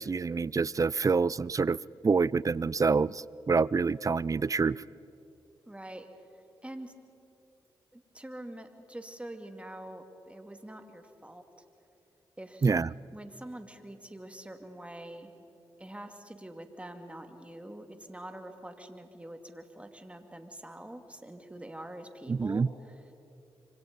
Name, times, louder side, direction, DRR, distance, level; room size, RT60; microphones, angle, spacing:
voice 1, 0.0-1.8 2.0-4.8 12.6-12.9 22.3-22.7, right 4 dB, 35° right, 23 dB, 0.4 m, -27 dB
voice 2, 5.7-6.1 6.6-6.9 7.9-11.4 12.4-12.7 13.1-15.3 15.8-23.1, right 1 dB, 10° right, 6 dB, 2.6 m, -45 dB
26.0 x 25.0 x 5.4 m, 2.8 s
supercardioid pair, 45°, 10 cm